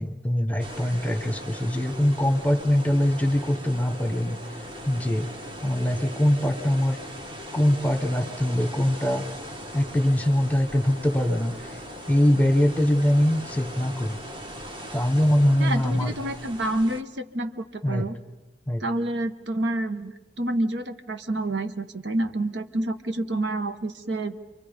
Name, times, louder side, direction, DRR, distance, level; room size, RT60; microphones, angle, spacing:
voice 1, 0.0-4.4 4.9-5.3 5.6-7.0 7.5-9.3 9.7-11.8 12.1-14.2 14.9-16.2 17.8-18.1 18.7-18.8, left 1 dB, 10° left, 8 dB, 1.2 m, -23 dB
sound 1, 0.5-15.9, left 2 dB, 60° right, 2.7 m, -45 dB
sound 2, 0.6-17.0, right 1 dB, 25° right, 1.4 m, -41 dB
voice 2, 15.6-18.2 18.8-24.4, right 1 dB, 80° right, 8 dB, 1.3 m, -28 dB
29.5 x 23.5 x 5.3 m, 1.1 s
head